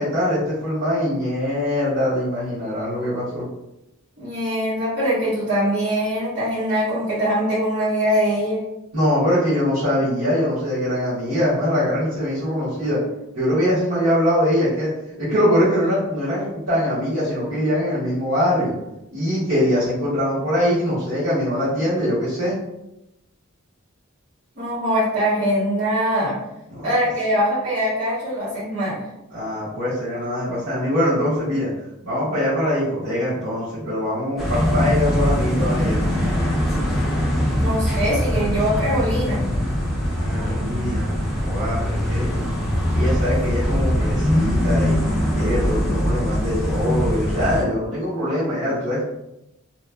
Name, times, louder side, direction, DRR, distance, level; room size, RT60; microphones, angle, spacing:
voice 1, 0.0-3.4 8.9-13.0 13.3-14.9 15.2-18.7 19.1-22.6 26.7-26.9 29.3-31.7 32.0-36.1 40.1-42.3 42.9-45.0 45.3-49.0, equal, 80° right, -14 dB, 1.3 m, -22 dB
voice 2, 4.2-8.6 24.6-26.4 26.8-29.0 37.5-39.5, equal, 55° right, -13 dB, 1.2 m, -22 dB
sound 1, 34.4-47.6, equal, ahead, 0.7 m, -22 dB
2.9 x 2.4 x 2.2 m, 0.90 s
head